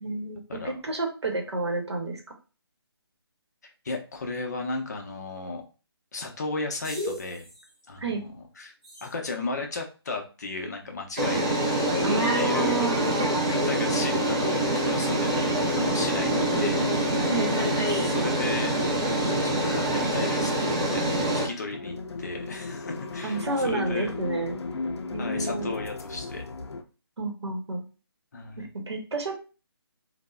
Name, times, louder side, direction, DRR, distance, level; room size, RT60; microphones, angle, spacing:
voice 1, 0.0-2.2 8.0-8.2 12.0-13.2 17.3-17.5 23.2-24.6 25.1-25.7 27.2-27.8 28.6-29.3, right 3 dB, 90° right, 2 dB, 0.8 m, -30 dB
voice 2, 3.8-5.6 6.1-7.5 7.9-8.2 8.6-8.7 9.0-11.6 12.4-12.8 13.5-15.5 15.7-16.9 17.9-18.7 19.2-20.5 20.9-21.1 21.3-24.1 25.2-26.4 28.3-28.7, left 3 dB, 40° left, 2 dB, 0.5 m, -35 dB
sound 1, 6.8-7.3 9.0-9.1 11.2-21.5, right 1 dB, 15° right, 0.3 m, -25 dB
sound 2, 15.5-26.8, left 3 dB, 90° left, 0.4 m, -36 dB
3.1 x 2.0 x 2.3 m, 0.34 s
hypercardioid pair, 165°, 14 cm